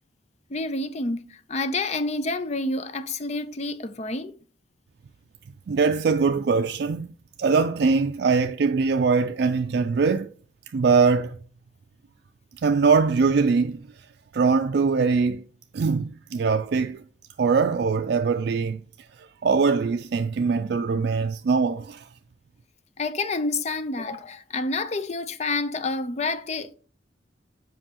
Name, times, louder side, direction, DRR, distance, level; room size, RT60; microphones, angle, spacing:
voice 1, 0.5-4.3 23.0-26.7, left 3 dB, 40° left, 0.6 m, -28 dB
voice 2, 5.7-7.1 7.4-10.3 10.7-11.4 12.6-14.1 14.3-15.4 15.7-17.0 17.4-18.8 19.2-22.1, right 5 dB, 65° right, 0.4 m, -22 dB
7.4 x 5.3 x 2.9 m
head